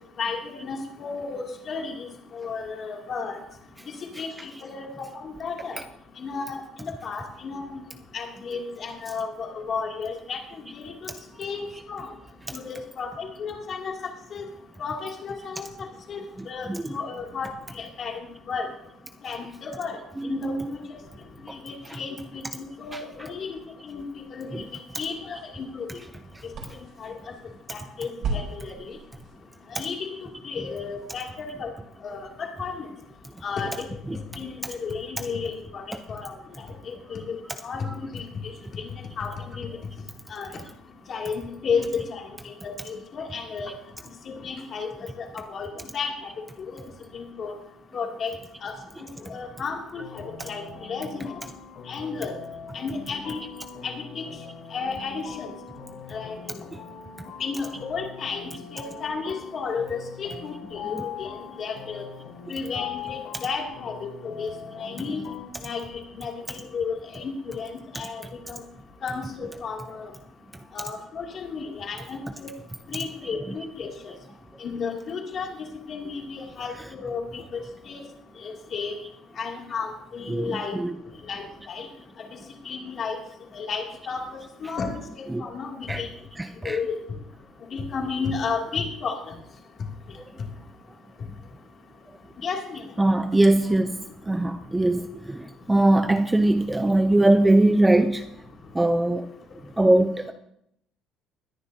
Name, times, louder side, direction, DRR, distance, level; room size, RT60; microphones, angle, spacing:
voice 1, 0.2-2.1 2.3-3.4 4.2-4.3 4.6-5.8 6.2-7.8 8.1-10.4 10.8-11.1 11.4-12.1 12.5-13.9 14.3-14.4 14.8-15.7 16.1-16.2 16.5-17.5 17.8-18.7 19.2-20.0 20.2-20.8 21.4-23.6 23.8-24.0 24.3-24.6 25.0-25.9 27.0-27.1 27.7-28.7 29.7-30.0 30.4-31.7 32.0-32.8 33.4-35.8 36.1-36.3 36.9-37.3 37.6-38.2 38.7-38.9 39.2-39.7 40.3-40.5 41.1-43.7 44.3-44.9 45.2-45.7 45.9-46.3 47.1-47.5 47.9-48.3 48.6-48.7 49.3-51.4 51.9-52.4 52.7-53.4 53.8-54.2 54.7-55.5 56.1-56.6 57.4-58.4 58.7-61.3 61.6-62.1 62.5-64.1 64.4-64.5 64.8-65.2 65.6-65.8 66.2-68.6 69.0-70.1 70.7-72.5 72.9-73.9 74.6-75.5 75.9-77.6 77.9-78.0 78.4-78.9 79.4-80.8 81.3-81.9 82.6-83.2 83.5-85.0 85.4-86.1 86.6-86.9 87.7-89.2 92.4-92.8, left 5 dB, 40° left, 1 dB, 2.5 m, -33 dB
voice 2, 16.4-17.0 20.2-20.7 21.9-22.0 22.9-23.0 24.5-24.7 30.6-30.7 34.1-34.2 37.8-38.0 60.9-61.0 65.1-65.2 73.3-73.6 76.8-76.9 80.3-80.9 85.3-85.5 85.9-86.0 86.4-86.8 93.0-94.0 94.3-95.0 95.3-98.2 98.7-99.3 99.8-100.3, right 2 dB, 10° right, 8 dB, 0.5 m, -22 dB
sound 1, 24.7-31.3, right 3 dB, 50° right, 3.9 m, -39 dB
sound 2, 50.0-65.5, left 7 dB, 70° left, 5.0 m, -41 dB
21.0 x 10.0 x 2.7 m, 0.74 s
cardioid pair, 155°, 0 cm